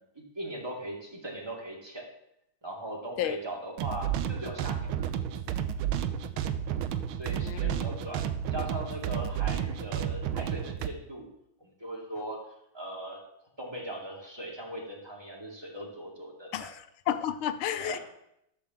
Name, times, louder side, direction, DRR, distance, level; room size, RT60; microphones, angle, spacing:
voice 1, 0.0-2.1 2.6-5.4 6.4-6.6 7.2-11.3 11.6-12.4 12.7-13.2 13.6-16.7 17.8-18.0, right 1 dB, 10° right, -2 dB, 2.2 m, -39 dB
sound 1, 3.8-10.9, right 9 dB, 85° right, 1.5 m, -31 dB
voice 2, 7.4-7.8 16.5-18.0, left 11 dB, 80° left, 12 dB, 1.5 m, -32 dB
12.0 x 4.8 x 7.0 m, 0.77 s
omnidirectional pair, 2.3 m